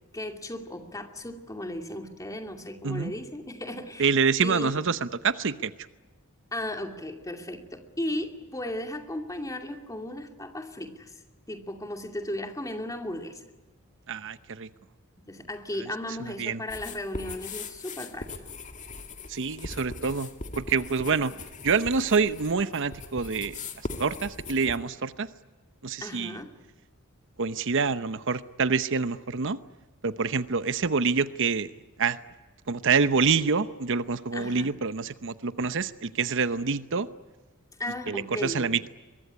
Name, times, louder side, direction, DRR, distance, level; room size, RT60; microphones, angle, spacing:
voice 1, 0.1-4.1 4.4-4.8 6.5-11.1 11.5-13.4 15.3-18.3 21.3-21.4 26.0-26.5 34.3-34.8 37.8-38.7, left 1 dB, 15° left, 5 dB, 2.5 m, -35 dB
voice 2, 4.0-5.7 14.1-14.7 16.2-16.6 19.3-20.3 20.6-21.3 21.6-23.6 24.0-25.3 25.8-26.4 27.4-29.6 30.0-31.7 32.0-32.2 32.7-37.1 38.1-38.9, right 5 dB, 60° right, 13 dB, 0.9 m, -26 dB
sound 1, 16.7-24.8, left 3 dB, 35° left, 2.1 m, -40 dB
23.0 x 22.5 x 9.7 m, 1.2 s
head